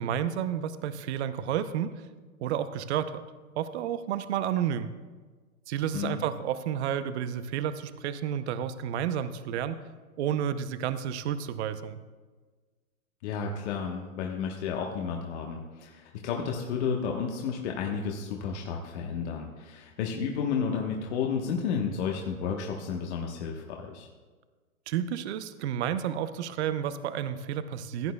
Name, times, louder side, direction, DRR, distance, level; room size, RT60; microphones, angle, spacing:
voice 1, 0.0-1.9 2.4-3.2 3.6-4.9 5.7-9.8 10.2-12.0 24.9-28.1, right 9 dB, 50° right, 12 dB, 0.7 m, -31 dB
voice 2, 13.2-24.1, left 6 dB, 50° left, 1 dB, 1.2 m, -32 dB
16.0 x 9.3 x 2.3 m, 1.4 s
hypercardioid pair, 130°, 42 cm